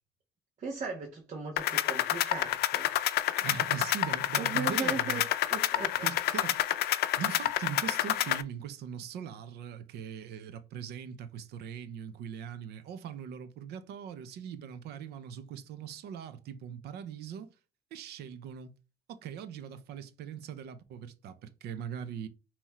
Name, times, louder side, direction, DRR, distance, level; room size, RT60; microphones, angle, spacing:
voice 1, 0.6-2.9 4.4-6.1, right 5 dB, 45° right, 1.2 m, -38 dB
sound 1, 1.6-8.4, left 13 dB, 75° left, 0.5 m, -29 dB
voice 2, 3.4-5.2 6.0-6.6 7.2-17.5 17.9-18.7 19.1-22.3, right 8 dB, 75° right, 0.8 m, -41 dB
5.6 x 3.0 x 3.0 m
cardioid pair, 110°, 17 cm